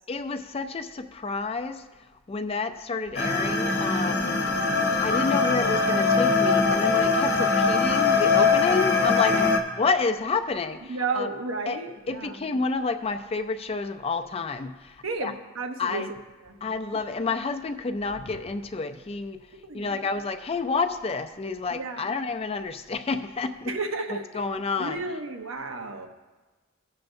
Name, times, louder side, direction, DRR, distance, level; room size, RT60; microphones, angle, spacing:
voice 1, 0.1-1.8 2.3-4.4 5.0-9.3 9.8-11.3 11.7-11.8 12.1-14.9 15.2-15.3 15.8-16.1 16.6-19.4 19.7-23.7 24.3-25.0, left 4 dB, 30° left, 7 dB, 0.4 m, -29 dB
sound 1, 3.1-9.6, left 4 dB, 55° left, 0.9 m, -22 dB
voice 2, 9.2-9.5 10.9-12.4 15.0-16.2 16.4-16.5 19.7-20.1 21.7-22.0 23.7-24.4 24.8-26.1, right 3 dB, 90° right, 5 dB, 0.8 m, -32 dB
17.0 x 6.5 x 2.6 m, 1.2 s
head